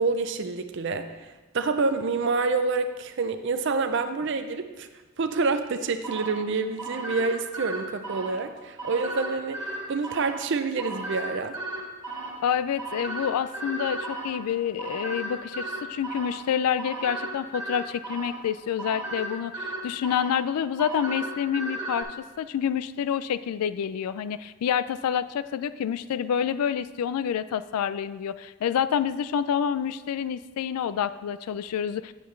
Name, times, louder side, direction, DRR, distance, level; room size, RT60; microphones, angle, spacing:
voice 1, 0.0-4.9 5.2-11.6, right 4 dB, 55° right, 8 dB, 0.5 m, -27 dB
sound 1, 6.0-22.0, right 2 dB, 20° right, 2.0 m, -36 dB
voice 2, 12.4-32.1, left 8 dB, 90° left, 15 dB, 0.3 m, -28 dB
8.9 x 7.8 x 3.2 m, 1.2 s
head